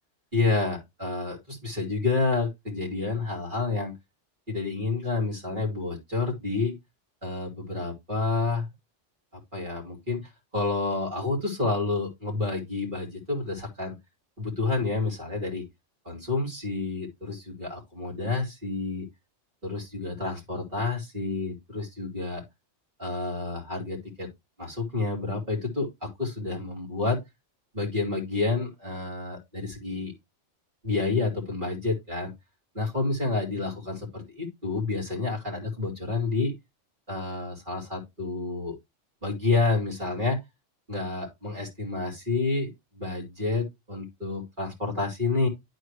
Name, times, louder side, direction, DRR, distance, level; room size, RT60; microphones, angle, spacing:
voice 1, 0.3-4.0 4.5-6.7 7.2-8.7 9.5-13.9 14.4-15.6 16.0-19.1 19.6-22.4 23.0-24.3 24.6-27.2 27.7-30.1 30.8-32.3 32.7-36.5 37.1-38.8 39.2-40.4 40.9-45.5, left 3 dB, 40° right, -2 dB, 2.9 m, -29 dB
11.5 x 4.2 x 3.2 m, 0.20 s
omnidirectional pair, 1.3 m